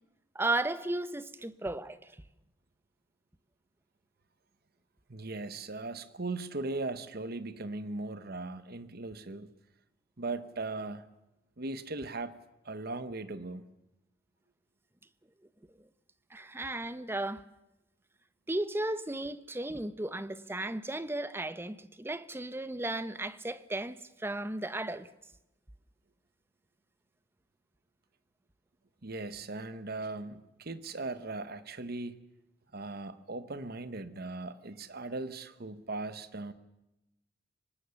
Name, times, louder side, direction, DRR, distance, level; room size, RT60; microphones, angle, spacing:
voice 1, 0.3-2.0 16.3-17.4 18.5-25.1, right 2 dB, 10° right, 0.7 m, -35 dB
voice 2, 5.1-9.5 10.2-11.1 11.6-12.3 12.6-13.6 29.0-32.2 32.7-36.5, right 3 dB, 55° right, 1.1 m, -38 dB
24.5 x 19.0 x 7.1 m
head